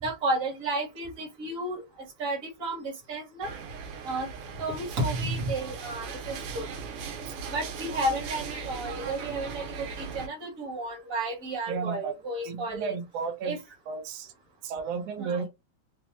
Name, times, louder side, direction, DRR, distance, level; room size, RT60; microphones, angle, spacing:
voice 1, 0.0-1.8 2.2-3.5 4.0-4.3 4.6-6.7 7.5-12.9 13.4-13.6 15.2-15.4, right 2 dB, 40° right, 1.3 m, -32 dB
sound 1, 3.4-10.3, right 5 dB, 90° right, 2.4 m, -38 dB
voice 2, 11.7-12.1 12.4-13.5 13.9-14.3 14.6-15.5, right 5 dB, 75° right, 1.6 m, -33 dB
5.6 x 2.1 x 2.9 m
omnidirectional pair, 3.4 m